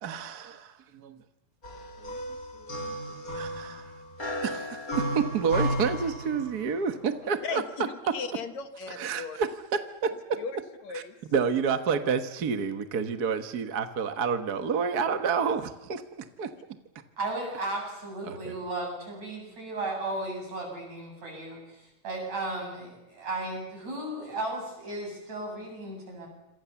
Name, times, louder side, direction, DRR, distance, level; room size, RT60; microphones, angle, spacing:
voice 1, 0.0-1.2 2.0-2.1 2.6-3.9 4.4-7.6 9.0-10.4 10.9-11.0 11.3-16.5 18.2-18.5, right 6 dB, 45° right, 8 dB, 1.3 m, -29 dB
sound 1, 1.6-6.8, equal, 30° left, 4.1 m, -34 dB
voice 2, 7.4-9.4 10.4-11.1, left 6 dB, 70° left, 8 dB, 2.8 m, -37 dB
voice 3, 17.2-26.3, right 2 dB, 65° right, 2 dB, 9.5 m, -35 dB
27.0 x 27.0 x 7.1 m, 0.99 s
omnidirectional pair, 3.4 m